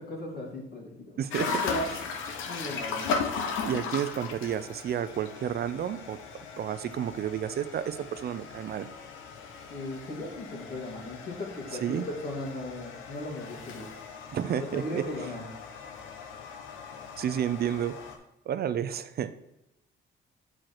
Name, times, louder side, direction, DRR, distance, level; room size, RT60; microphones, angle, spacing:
voice 1, 0.0-1.9 2.4-3.1 9.7-13.9 14.7-15.5, left 1 dB, 55° left, -1 dB, 2.4 m, -37 dB
voice 2, 1.2-1.5 3.0-3.1 3.6-6.2 6.6-8.9 11.8-12.1 14.3-15.0 17.2-18.0 18.5-19.3, right 9 dB, 55° right, 13 dB, 0.5 m, -31 dB
sound 1, 1.3-18.2, left 5 dB, 90° left, 0.9 m, -37 dB
7.6 x 4.8 x 4.4 m, 0.91 s
cardioid pair, 90°, 20 cm